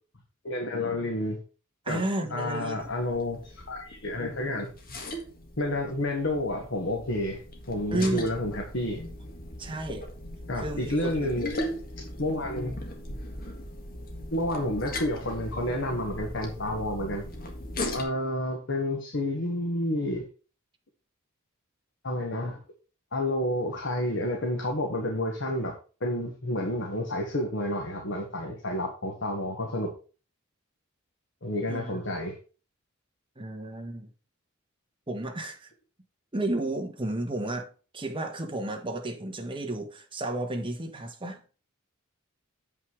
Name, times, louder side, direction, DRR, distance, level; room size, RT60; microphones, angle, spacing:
voice 1, 0.4-1.4 1.9-2.0 2.3-4.7 5.6-7.4 7.7-9.0 10.5-11.5 12.2-12.8 14.3-17.2 17.9-20.2 22.0-22.6 23.1-25.7 26.0-29.9 31.4-32.3, left 1 dB, 60° left, 1.6 m, -30 dB
voice 2, 1.8-2.9 7.9-8.3 9.6-10.1 10.5-11.3 31.7-32.1 33.4-34.1 35.1-35.7 36.3-37.7 37.9-41.4, right 1 dB, 25° right, 1.5 m, -32 dB
sound 1, 2.8-18.0, left 1 dB, 45° left, 1.7 m, -38 dB
7.7 x 5.6 x 4.7 m
head